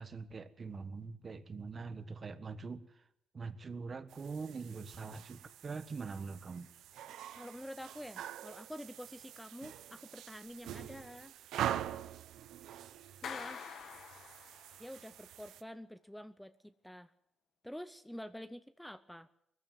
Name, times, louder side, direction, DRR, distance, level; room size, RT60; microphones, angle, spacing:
voice 1, 0.0-3.0 3.3-6.7, right 4 dB, 40° right, 1.4 m, -43 dB
sound 1, 4.1-15.6, right 11 dB, 80° right, 0.8 m, -44 dB
voice 2, 7.4-11.3 13.2-13.7 14.8-17.1 17.6-19.3, equal, 5° left, 0.7 m, -48 dB
Clapping, 13.2-14.9, left 7 dB, 65° left, 1.8 m, -46 dB
19.5 x 14.5 x 9.4 m
cardioid pair, 90°, 0 cm